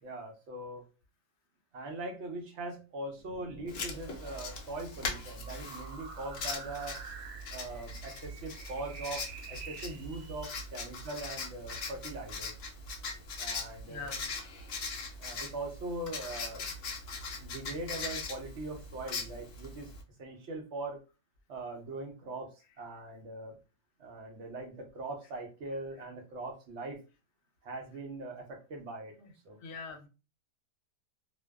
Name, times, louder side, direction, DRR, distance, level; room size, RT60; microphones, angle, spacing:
voice 1, 0.0-0.8 1.7-7.0 7.5-12.5 13.4-14.1 15.2-16.7 17.4-19.9 20.2-21.0 21.5-23.6 24.0-27.0 27.6-29.6, right 2 dB, 60° right, 2 dB, 0.7 m, -41 dB
sound 1, 3.2-10.6, right 5 dB, 90° right, 1.2 m, -49 dB
Writing, 3.7-20.0, left 3 dB, 85° left, 0.5 m, -41 dB
voice 2, 13.9-14.3 29.6-30.1, left 4 dB, 65° left, 5 dB, 0.9 m, -43 dB
2.5 x 2.2 x 2.2 m, 0.31 s
omnidirectional pair, 1.7 m